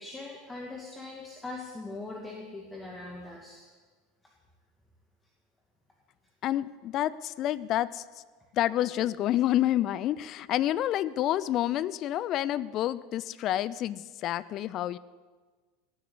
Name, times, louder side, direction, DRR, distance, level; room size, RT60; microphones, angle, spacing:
voice 1, 0.0-3.6, left 2 dB, 15° left, 0 dB, 2.1 m, -41 dB
voice 2, 6.4-8.0 8.5-15.0, left 13 dB, 40° left, 19 dB, 0.5 m, -28 dB
16.5 x 8.1 x 9.7 m, 1.4 s
figure-of-eight pair, 80°, 0 cm